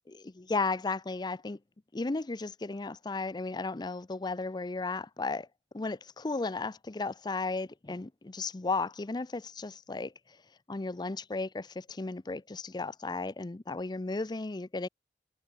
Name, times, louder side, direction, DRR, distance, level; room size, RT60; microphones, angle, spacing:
voice 1, 0.1-1.6 1.9-5.5 5.7-10.1 10.7-14.9, left 3 dB, 25° left, 0.5 m, -34 dB
head